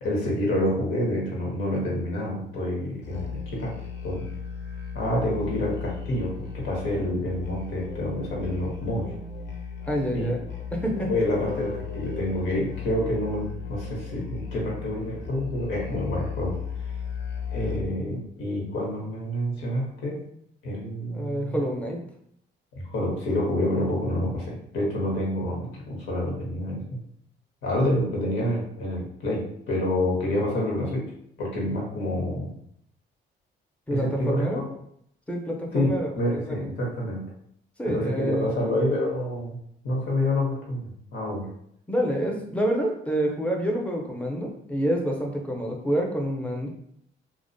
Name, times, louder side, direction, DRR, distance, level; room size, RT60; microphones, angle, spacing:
voice 1, 0.0-3.7 4.0-4.2 4.9-9.1 10.1-10.3 11.1-16.6 17.5-20.2 20.6-21.6 22.7-26.8 27.6-31.0 31.4-32.5 33.9-34.6 35.7-37.2 37.9-39.6 39.8-41.5, left 1 dB, 85° left, -2 dB, 0.9 m, -28 dB
Musical instrument, 3.0-18.0, left 6 dB, 60° left, 0.5 m, -35 dB
voice 2, 9.9-10.4 10.7-11.1 21.1-22.0 33.9-34.6 35.3-36.7 37.8-38.8 41.9-46.7, equal, 5° left, 0 dB, 0.5 m, -28 dB
2.4 x 2.1 x 2.6 m, 0.71 s
cardioid pair, 90°, 20 cm